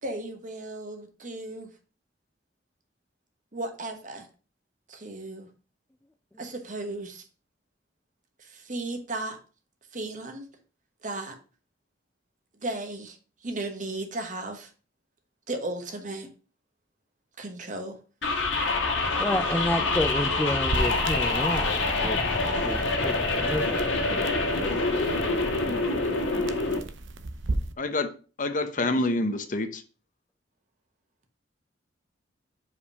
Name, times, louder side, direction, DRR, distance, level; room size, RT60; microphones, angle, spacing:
voice 1, 0.0-1.7 3.5-4.3 4.9-5.5 6.4-7.2 8.4-9.4 9.9-10.5 11.0-11.4 12.6-13.2 13.4-14.7 15.5-16.3 17.4-18.0, right 2 dB, 45° right, 1.2 m, -35 dB
sound 1, 18.2-26.8, left 3 dB, 85° left, 1.6 m, -26 dB
voice 2, 19.2-22.2 22.6-24.1, left 1 dB, 10° left, 0.4 m, -30 dB
sound 2, 20.7-27.7, right 2 dB, 90° right, 0.7 m, -35 dB
voice 3, 27.8-28.1 28.4-29.8, left 2 dB, 45° left, 0.8 m, -27 dB
5.2 x 4.9 x 5.3 m
head